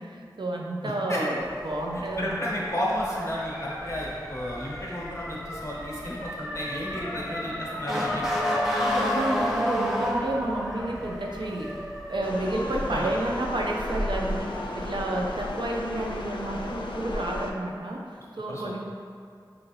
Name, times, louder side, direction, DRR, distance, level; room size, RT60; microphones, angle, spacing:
voice 1, 0.0-2.6 7.7-7.8 8.8-18.8, right 1 dB, 75° right, -1 dB, 0.5 m, -31 dB
voice 2, 0.8-1.2 1.9-8.3 12.9-13.2 18.5-18.8, left 1 dB, 35° left, -5 dB, 1.0 m, -33 dB
Motor vehicle (road) / Siren, 1.4-14.9, equal, 5° right, 0.7 m, -32 dB
sound 1, 12.2-17.5, left 1 dB, 85° left, 0.4 m, -34 dB
6.0 x 2.5 x 3.1 m, 2.2 s
wide cardioid pair, 60°, 8 cm